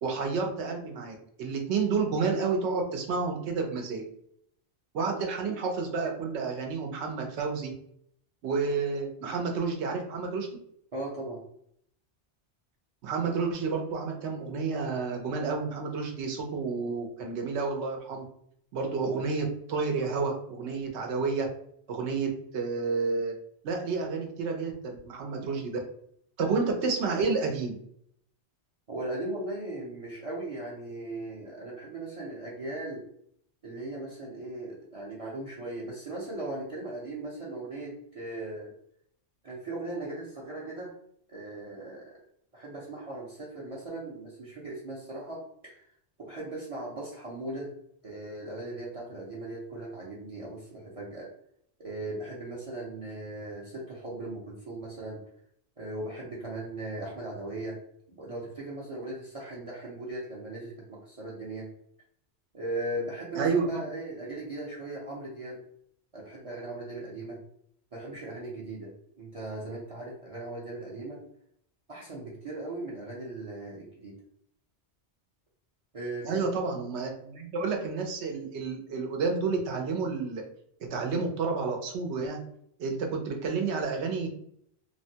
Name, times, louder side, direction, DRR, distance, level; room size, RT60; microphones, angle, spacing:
voice 1, 0.0-4.0 4.9-7.7 8.4-10.5 13.0-18.2 18.7-21.5 21.9-23.3 23.6-25.8 26.4-27.8 63.3-63.8 76.2-80.4 80.9-82.4 82.8-84.3, right 4 dB, 80° right, 2 dB, 0.9 m, -30 dB
voice 2, 10.9-11.4 28.9-33.0 33.6-38.7 39.4-40.9 41.3-42.1 42.5-45.9 46.2-47.7 48.0-51.3 51.8-55.2 55.8-57.8 58.1-61.7 62.5-65.6 66.1-67.4 67.9-71.2 71.9-74.2 75.9-76.4, right 2 dB, 40° right, -4 dB, 0.6 m, -38 dB
3.2 x 2.1 x 2.7 m, 0.68 s
omnidirectional pair, 1.1 m